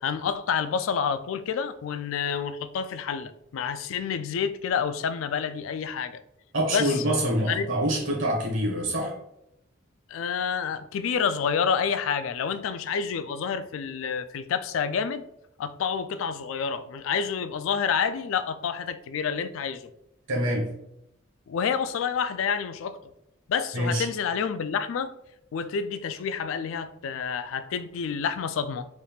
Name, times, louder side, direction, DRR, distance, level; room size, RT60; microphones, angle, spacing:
voice 1, 0.0-6.2 6.7-6.9 7.5-7.7 10.1-15.2 15.6-19.9 21.5-23.0 23.5-25.1 25.5-28.9, left 6 dB, 75° left, 0.3 m, -28 dB
voice 2, 6.5-9.2 20.3-20.7 23.7-24.1, equal, 70° right, 1.4 m, -26 dB
4.1 x 3.5 x 2.3 m
head